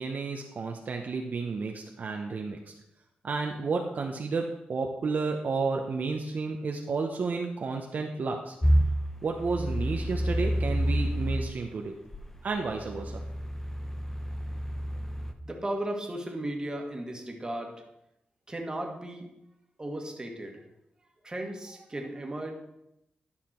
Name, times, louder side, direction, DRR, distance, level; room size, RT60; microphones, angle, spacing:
voice 1, 0.0-2.6 3.2-8.5 9.2-12.0 12.4-13.2, right 4 dB, 55° right, 2 dB, 0.8 m, -31 dB
sound 1, 8.6-11.5 12.1-15.3, equal, 10° left, 0.8 m, -29 dB
voice 2, 15.4-17.8 18.5-19.3 19.8-20.6 21.2-22.5, right 1 dB, 25° right, 2 dB, 1.7 m, -35 dB
11.5 x 5.8 x 4.4 m, 0.85 s
cardioid pair, 95°, 3 cm